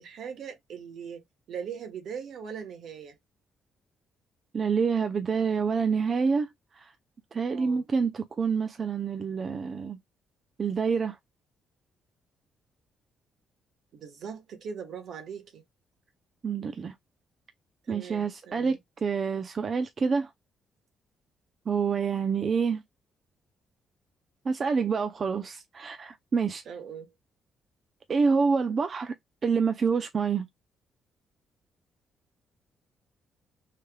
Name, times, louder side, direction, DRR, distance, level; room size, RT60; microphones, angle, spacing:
voice 1, 0.0-3.2 7.5-7.8 13.9-15.6 17.8-18.8 26.6-27.1, right 7 dB, 70° right, 1.1 m, -40 dB
voice 2, 4.5-6.9 7.3-10.0 10.6-11.2 16.4-16.9 17.9-20.3 21.7-22.8 24.5-26.6 28.1-29.1 29.4-30.5, right 5 dB, 45° right, 0.4 m, -27 dB
3.3 x 3.1 x 2.2 m
cardioid pair, 90°, 0 cm